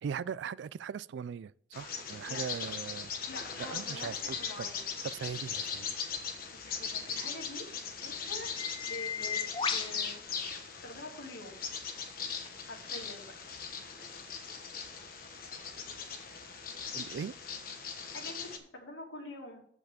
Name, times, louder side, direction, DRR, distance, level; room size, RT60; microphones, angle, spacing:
voice 1, 0.0-3.1 3.6-4.7 5.1-5.9 16.9-17.3, right 7 dB, 70° right, 0.3 m, -40 dB
Bird vocalization bird call bird song, 1.7-18.6, left 6 dB, 50° left, 1.3 m, -39 dB
sound 1, 1.8-11.1 11.5-17.4, left 6 dB, 25° left, 0.5 m, -44 dB
voice 2, 3.3-4.8 6.5-7.7 8.0-8.5 8.8-9.4 9.7-10.2 10.8-11.6 12.6-13.3 18.1-19.6, left 1 dB, 80° left, 2.6 m, -45 dB
8.1 x 5.9 x 6.8 m
head